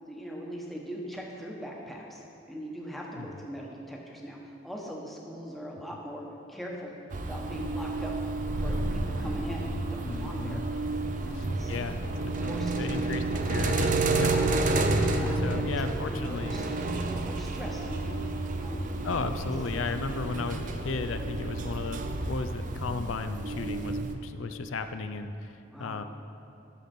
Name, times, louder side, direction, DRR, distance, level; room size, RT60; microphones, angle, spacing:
voice 1, 0.0-6.2 6.5-6.9 7.2-8.1 8.6-10.6 11.1-11.9 12.4-13.1 14.2-14.6 15.2-16.7 17.1-18.2 18.6-18.9 20.3-20.5 25.7-26.0, equal, ahead, -2 dB, 1.0 m, -40 dB
sound 1, 7.1-24.1, right 2 dB, 40° right, 0.5 m, -30 dB
voice 2, 10.0-10.6 11.3-13.2 13.5-14.3 14.6-14.8 15.4-16.6 19.0-25.5 25.8-26.0, left 4 dB, 80° left, 9 dB, 0.5 m, -35 dB
11.0 x 6.8 x 4.3 m, 2.7 s
head